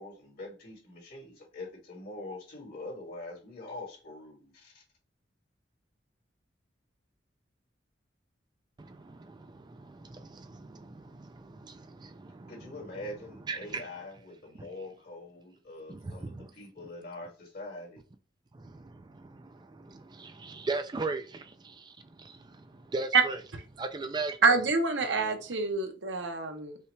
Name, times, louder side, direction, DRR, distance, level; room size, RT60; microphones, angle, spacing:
voice 1, 0.0-4.8 12.5-18.0, left 2 dB, 60° left, 2.1 m, -44 dB
voice 2, 8.8-12.5 13.5-13.8 15.9-16.5 18.5-23.4 23.8-24.4, right 3 dB, 25° right, 0.4 m, -39 dB
voice 3, 24.4-26.8, right 4 dB, 75° right, 0.9 m, -26 dB
5.5 x 2.4 x 3.1 m
head